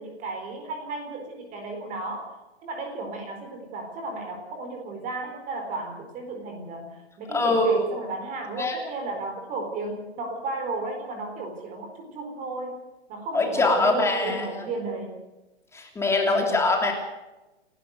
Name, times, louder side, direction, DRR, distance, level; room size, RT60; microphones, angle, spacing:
voice 1, 0.0-2.3 2.6-12.8 13.1-15.2 16.3-16.6, right 3 dB, 20° right, 5 dB, 4.3 m, -34 dB
voice 2, 7.3-7.8 8.6-8.8 13.3-14.6 15.7-16.9, left 2 dB, 10° left, 2 dB, 3.0 m, -23 dB
29.5 x 12.0 x 8.0 m, 1.0 s
hypercardioid pair, 145°, 34 cm